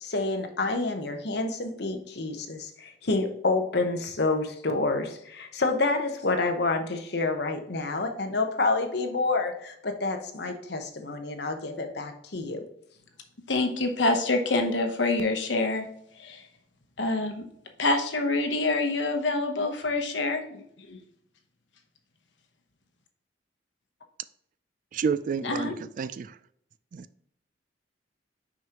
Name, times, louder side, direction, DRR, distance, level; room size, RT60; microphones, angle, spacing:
voice 1, 0.0-12.6, left 3 dB, 65° left, 5 dB, 1.0 m, -28 dB
voice 2, 13.5-15.9 16.2-16.4 17.0-17.4 17.8-21.0 25.4-25.7, left 2 dB, 85° left, 5 dB, 1.1 m, -26 dB
voice 3, 24.9-26.4 26.9-27.1, right 6 dB, 45° right, 15 dB, 0.3 m, -30 dB
6.2 x 5.1 x 3.0 m, 0.70 s
head